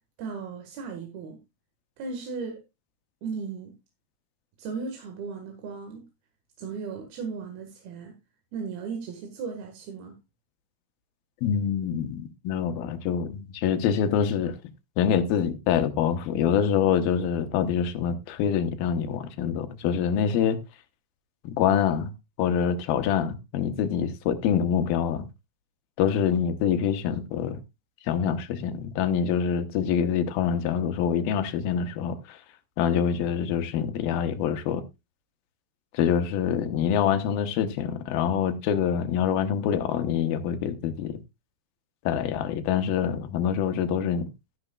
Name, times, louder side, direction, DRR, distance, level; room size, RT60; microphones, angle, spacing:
voice 1, 0.2-1.4 2.0-2.6 3.2-3.7 4.6-6.1 6.6-8.1 8.5-10.2, right 5 dB, 90° right, 3.6 m, -36 dB
voice 2, 11.4-14.6 15.0-20.6 21.4-22.1 22.4-25.3 26.0-27.6 28.0-32.4 32.8-34.8 35.9-41.2 42.1-44.3, left 8 dB, 80° left, 2.8 m, -25 dB
13.0 x 10.5 x 2.3 m
omnidirectional pair, 4.2 m